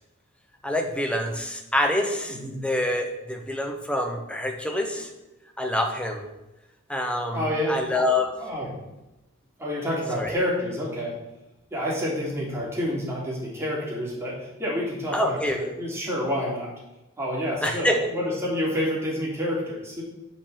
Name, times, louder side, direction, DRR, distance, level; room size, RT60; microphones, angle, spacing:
voice 1, 0.6-5.1 5.6-6.3 6.9-8.3 10.1-10.4 15.1-15.7 17.6-18.1, left 1 dB, 5° left, 4 dB, 1.1 m, -26 dB
voice 2, 2.3-2.6 7.3-7.8 8.4-8.7 9.6-11.1 11.7-16.7 17.2-20.0, equal, 15° right, -5 dB, 3.2 m, -28 dB
8.0 x 5.9 x 7.0 m, 0.97 s
head